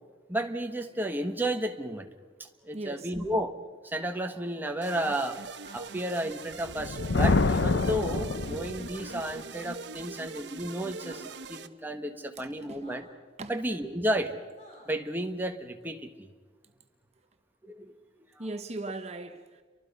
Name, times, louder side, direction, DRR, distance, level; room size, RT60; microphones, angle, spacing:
voice 1, 0.3-2.1 2.6-3.5 3.8-5.4 5.7-11.2 11.5-13.1 13.5-14.3 14.9-16.3 17.6-17.9 18.4-18.5, right 1 dB, 10° right, 1.4 m, -32 dB
voice 2, 2.7-3.1 10.0-10.1 12.4-12.8 13.4-13.5 18.4-19.6, right 2 dB, 35° right, 1.0 m, -39 dB
sound 1, 4.8-11.7, right 4 dB, 70° right, 1.0 m, -42 dB
sound 2, 5.6-5.8 7.4-7.7 8.9-9.2 11.0-11.2 12.8-13.0 14.6-15.0, equal, 40° left, 7.1 m, -51 dB
Thunder, 6.6-9.1, left 3 dB, 80° left, 0.7 m, -26 dB
30.0 x 24.0 x 5.5 m
head